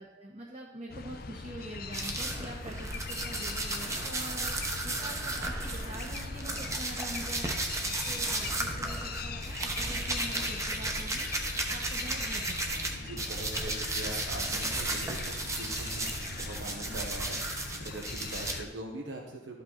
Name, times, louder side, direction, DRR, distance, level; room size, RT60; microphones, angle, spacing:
voice 1, 0.0-7.5 7.8-12.9, right 1 dB, 40° right, -2 dB, 1.1 m, -45 dB
sound 1, 0.9-18.7, left 4 dB, 55° left, 0.6 m, -42 dB
sound 2, 1.9-12.9 13.2-18.6, right 2 dB, 15° right, 1.0 m, -34 dB
sound 3, 2.7-14.3, right 1 dB, 55° right, 1.3 m, -54 dB
voice 2, 12.9-19.6, right 1 dB, 85° right, 1 dB, 1.3 m, -42 dB
13.0 x 5.6 x 4.0 m, 1.0 s
head